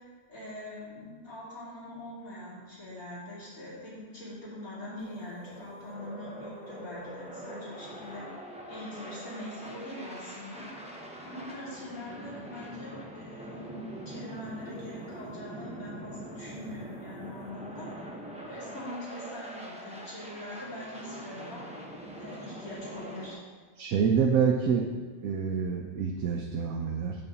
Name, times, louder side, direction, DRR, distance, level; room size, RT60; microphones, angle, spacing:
voice 1, 0.3-8.2 8.7-10.6 11.2-18.0 18.4-21.6 22.2-23.4, left 1 dB, 85° left, -8 dB, 3.3 m, -42 dB
sound 1, 5.0-23.3, right 1 dB, 5° right, 0.7 m, -44 dB
voice 2, 23.8-24.9 25.2-27.2, right 6 dB, 80° right, 2 dB, 1.1 m, -27 dB
7.8 x 4.3 x 6.9 m, 1.5 s
omnidirectional pair, 1.4 m